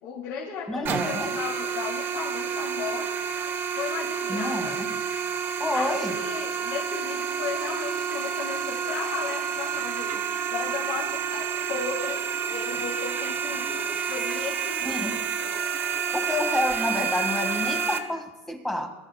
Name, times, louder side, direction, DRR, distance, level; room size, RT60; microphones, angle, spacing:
voice 1, 0.0-3.1 3.7-4.8 5.7-10.2 10.5-15.3, left 6 dB, 60° left, -3 dB, 2.8 m, -35 dB
voice 2, 0.7-1.3 4.3-4.9 5.6-6.2 14.8-15.2 16.1-18.9, left 1 dB, 5° left, 3 dB, 1.8 m, -29 dB
sound 1, 0.9-18.0, right 7 dB, 35° right, 1.1 m, -29 dB
22.0 x 13.0 x 2.3 m, 0.99 s
supercardioid pair, 150°, 7 cm